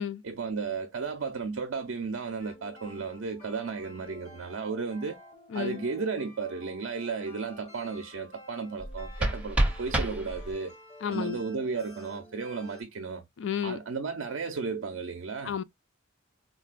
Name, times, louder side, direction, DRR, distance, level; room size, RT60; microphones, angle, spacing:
voice 1, 0.2-5.2 5.5-10.7 11.1-13.2 13.6-15.5, right 4 dB, 80° right, 0.6 m, -34 dB
sound 1, 2.4-12.8, left 1 dB, 35° left, 1.0 m, -51 dB
voice 2, 5.5-5.8 11.0-11.4 13.4-13.8 15.4-15.6, left 8 dB, 65° left, 0.3 m, -32 dB
sound 2, 8.8-10.8, right 1 dB, 5° right, 0.6 m, -29 dB
3.9 x 2.2 x 2.4 m
head